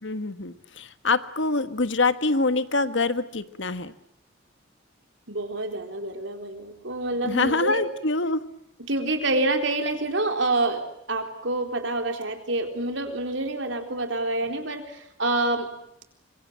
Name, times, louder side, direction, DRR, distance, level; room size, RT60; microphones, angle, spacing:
voice 1, 0.0-3.9 7.2-8.4, left 3 dB, 70° left, 12 dB, 1.5 m, -25 dB
voice 2, 5.3-7.8 8.9-15.7, right 2 dB, 70° right, 5 dB, 4.1 m, -27 dB
25.5 x 23.0 x 8.9 m, 0.76 s
head